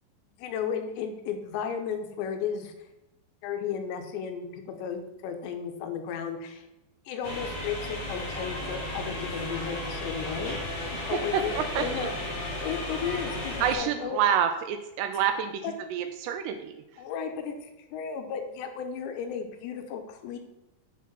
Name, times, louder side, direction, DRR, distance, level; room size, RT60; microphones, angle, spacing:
voice 1, 0.4-2.9 3.4-6.7 7.1-12.1 12.6-14.2 15.6-15.7 17.0-20.4, left 7 dB, 85° left, 6 dB, 3.1 m, -34 dB
sound 1, 7.2-13.7, left 1 dB, 50° left, 2.4 m, -34 dB
voice 2, 10.9-12.1 13.6-16.8, right 8 dB, 80° right, 7 dB, 2.5 m, -28 dB
7.1 x 4.7 x 5.9 m, 0.95 s
omnidirectional pair, 5.1 m